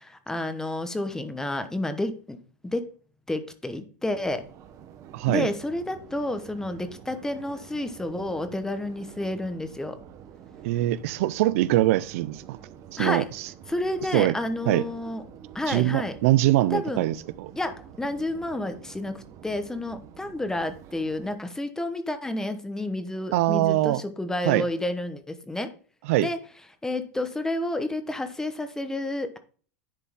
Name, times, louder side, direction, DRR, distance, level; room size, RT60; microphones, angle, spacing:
voice 1, 0.0-2.4 2.6-2.9 3.3-4.4 5.2-10.0 13.0-13.3 13.7-15.2 15.5-16.2 16.7-17.1 17.6-25.7 26.2-26.4 26.8-29.4, left 1 dB, 5° left, 1.0 m, -30 dB
Subway metro underground, 4.0-21.4, right 8 dB, 40° right, 1.0 m, -47 dB
voice 2, 5.1-5.5 10.6-12.6 12.9-13.5 14.1-14.3 14.7-14.8 15.7-17.5 23.3-24.0 24.4-24.7 26.1-26.3, right 16 dB, 70° right, 0.4 m, -23 dB
10.5 x 4.3 x 3.7 m
supercardioid pair, 130°, 8 cm